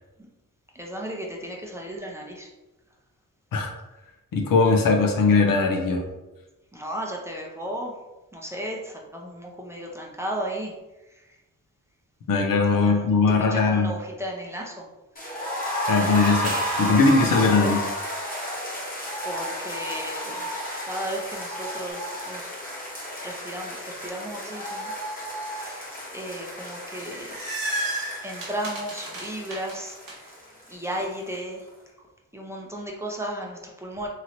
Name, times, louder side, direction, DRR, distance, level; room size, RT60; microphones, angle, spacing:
voice 1, 0.7-2.5 6.7-7.9 8.3-10.7 11.1-11.4 12.7-13.1 13.4-14.9 19.2-22.4 23.2-24.9 25.5-27.4 28.2-30.4 30.7-31.7 32.0-32.1 32.3-34.1, right 1 dB, 10° right, -2 dB, 0.6 m, -35 dB
voice 2, 4.3-6.0 12.3-13.9 15.9-17.8, left 4 dB, 75° left, 2 dB, 0.6 m, -20 dB
sound 1, 15.2-31.0 31.3-31.4 31.7-31.8, equal, 25° left, 1.0 m, -32 dB
sound 2, 16.2-17.2 21.9-22.0, right 5 dB, 50° right, 0.4 m, -38 dB
sound 3, 26.8-30.1, right 1 dB, 85° right, 1.1 m, -32 dB
3.0 x 2.8 x 2.6 m, 1.1 s
cardioid pair, 70°, 34 cm